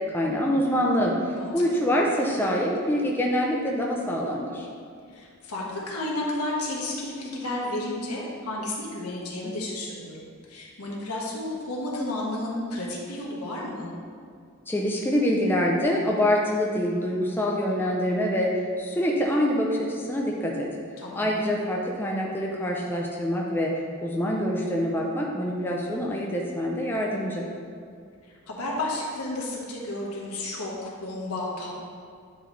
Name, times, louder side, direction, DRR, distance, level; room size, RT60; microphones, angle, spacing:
voice 1, 0.1-1.1 1.5-4.7 14.7-20.7 21.1-23.7 24.0-27.5, equal, 10° left, -2 dB, 0.5 m, -25 dB
voice 2, 1.3-1.8 5.1-13.9 21.0-21.3 28.5-31.7, left 1 dB, 85° left, -3 dB, 1.3 m, -32 dB
9.2 x 3.2 x 3.9 m, 2.2 s
head